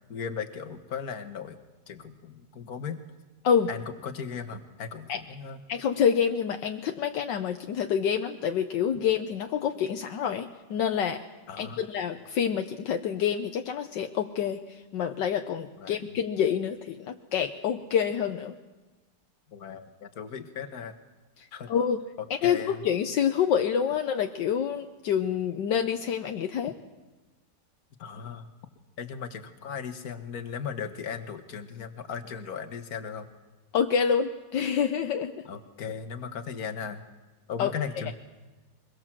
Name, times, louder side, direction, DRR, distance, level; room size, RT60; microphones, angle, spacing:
voice 1, 0.1-1.6 1.9-3.0 3.7-5.6 11.5-11.8 15.8-16.1 19.5-21.0 21.5-21.7 22.2-22.9 28.0-28.5 29.0-33.3 35.5-37.0 37.5-38.1, left 6 dB, 55° left, 8 dB, 1.9 m, -37 dB
voice 2, 5.7-11.2 11.6-18.5 21.7-22.0 22.4-26.7 33.7-35.3 37.6-37.7 38.1-38.2, left 8 dB, 75° left, 6 dB, 1.5 m, -27 dB
23.5 x 21.5 x 7.5 m, 1.2 s
omnidirectional pair, 2.0 m